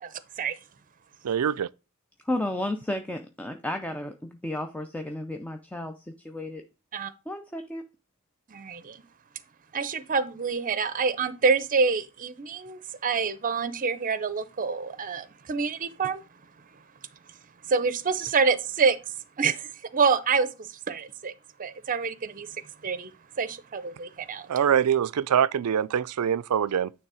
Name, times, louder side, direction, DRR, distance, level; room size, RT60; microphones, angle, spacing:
voice 1, 0.0-0.6 6.9-7.1 8.5-9.0 9.7-16.2 17.7-19.0 19.4-21.3 21.6-23.1 23.4-24.5, right 5 dB, 40° right, 0.6 m, -27 dB
voice 2, 1.2-1.7 24.5-26.9, right 8 dB, 80° right, 0.4 m, -24 dB
voice 3, 2.3-6.6 7.3-7.8, left 1 dB, 5° left, 0.5 m, -33 dB
9.3 x 3.4 x 4.8 m
head